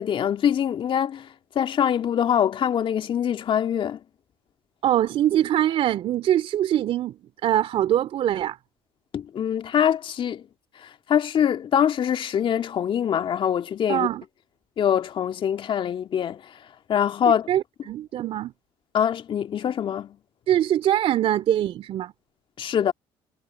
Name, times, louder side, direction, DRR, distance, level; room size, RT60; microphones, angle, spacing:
voice 1, 0.0-4.0 9.1-10.4 10.8-14.1 14.8-16.6 16.9-17.5 18.9-20.2 22.6-22.9, left 9 dB, 50° left, 2.0 m, -24 dB
voice 2, 4.8-7.1 7.4-8.6 13.9-14.2 17.5-18.5 20.5-22.1, right 11 dB, 55° right, 2.7 m, -23 dB
hypercardioid pair, 65°, 11 cm